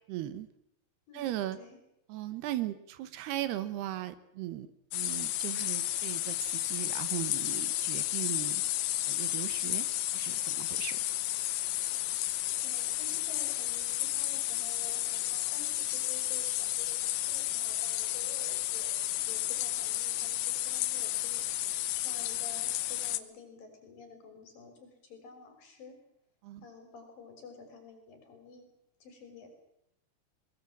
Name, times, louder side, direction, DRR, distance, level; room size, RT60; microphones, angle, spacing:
voice 1, 0.1-0.5 1.1-1.6 2.1-8.6 9.1-9.9 10.1-11.0 26.4-26.7, right 13 dB, 80° right, 13 dB, 3.2 m, -38 dB
voice 2, 1.1-1.8 12.6-21.4 21.9-26.0 26.6-28.7 29.0-29.6, left 4 dB, 60° left, 6 dB, 5.4 m, -51 dB
sound 1, 4.9-23.2, left 15 dB, 75° left, 2.8 m, -32 dB
22.0 x 21.0 x 7.4 m, 0.81 s
omnidirectional pair, 4.7 m